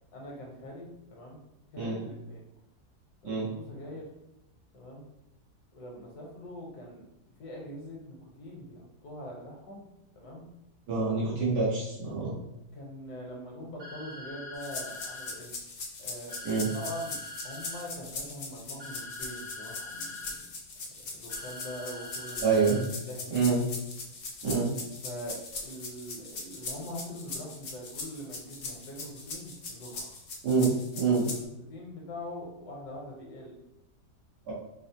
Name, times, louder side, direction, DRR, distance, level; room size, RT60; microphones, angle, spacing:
voice 1, 0.1-1.4 1.7-2.4 3.2-4.1 4.7-5.0 5.7-7.1 7.4-9.8 10.1-10.4 12.7-15.5 16.0-16.4 16.7-17.2 17.4-20.4 21.1-22.6 23.0-23.6 25.0-30.1 31.7-33.5, equal, 75° left, -1 dB, 1.4 m, -43 dB
voice 2, 10.9-12.4 16.4-16.7 22.4-22.8 23.3-23.6 24.4-24.7 30.4-30.7 31.0-31.3 34.5-34.6, right 4 dB, 80° right, -6 dB, 1.8 m, -26 dB
sound 1, 13.8-15.3 16.3-17.8 18.8-20.3 21.3-22.8, left 2 dB, 60° right, 1.6 m, -43 dB
sound 2, 14.6-31.4, left 3 dB, 90° left, 0.5 m, -40 dB
4.8 x 2.0 x 2.7 m, 0.87 s
omnidirectional pair, 1.8 m